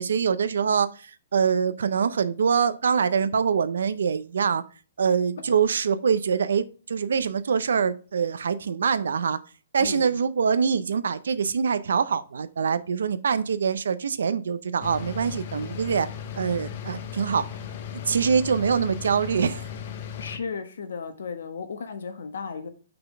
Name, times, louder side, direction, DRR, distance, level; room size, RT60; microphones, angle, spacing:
voice 1, 0.0-4.6 5.0-9.4 9.7-16.1 16.4-17.5 18.1-19.6, right 6 dB, 80° right, 0.5 m, -24 dB
voice 2, 9.8-10.2 20.2-22.7, left 5 dB, 70° left, 1.1 m, -35 dB
sound 1, 14.8-20.4, left 8 dB, 35° left, 0.6 m, -37 dB
5.7 x 3.9 x 4.9 m
hypercardioid pair, 175°, 0 cm